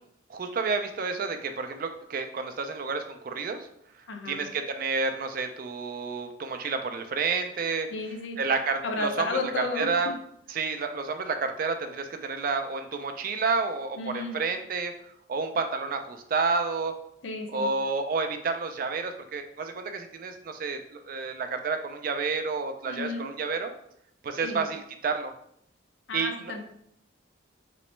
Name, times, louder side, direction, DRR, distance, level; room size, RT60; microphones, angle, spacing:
voice 1, 0.3-3.6 4.3-7.9 8.4-10.1 10.5-14.9 15.3-16.9 17.5-23.7 24.2-25.3 26.1-26.6, right 4 dB, 45° right, 7 dB, 0.3 m, -30 dB
voice 2, 4.1-4.4 7.9-8.4 8.8-10.1 14.0-14.4 17.2-17.7 22.9-23.3 24.4-24.7 26.1-26.6, left 3 dB, 70° left, 4 dB, 0.6 m, -33 dB
3.0 x 3.0 x 3.1 m, 0.70 s
head